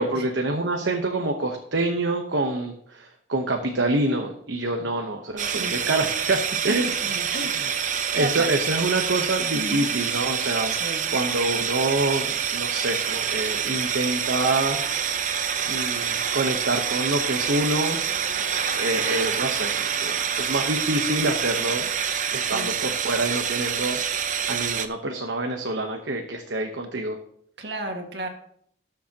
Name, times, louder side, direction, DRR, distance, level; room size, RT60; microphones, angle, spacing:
voice 1, 0.0-6.4 6.6-7.7 8.1-10.7 11.1-14.8 15.6-18.0 18.7-21.9 22.3-24.0 24.5-27.2, right 2 dB, 75° right, 4 dB, 1.0 m, -26 dB
sound 1, 5.4-24.9, right 7 dB, 40° right, 0.7 m, -27 dB
voice 2, 7.3-7.7 8.2-8.5 9.5-9.9 10.7-11.0 22.5-22.7 27.6-28.3, right 1 dB, 60° right, 3 dB, 1.7 m, -32 dB
18.5 x 7.1 x 2.9 m, 0.67 s
head